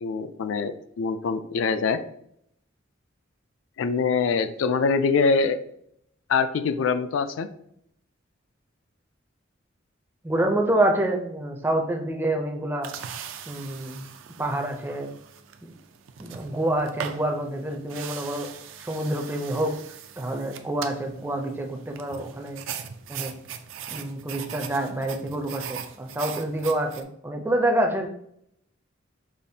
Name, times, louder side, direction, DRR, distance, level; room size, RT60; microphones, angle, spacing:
voice 1, 0.0-2.0 3.8-5.6 6.3-7.5, left 5 dB, 75° left, 11 dB, 0.3 m, -24 dB
voice 2, 10.2-12.9 13.5-14.0 14.4-15.1 16.2-18.5 18.8-19.7 20.2-22.6 23.1-23.3 23.9-28.1, right 1 dB, 10° right, 2 dB, 0.4 m, -27 dB
sound 1, 12.8-27.0, right 8 dB, 75° right, 0.4 m, -40 dB
5.0 x 2.5 x 2.7 m, 0.70 s
head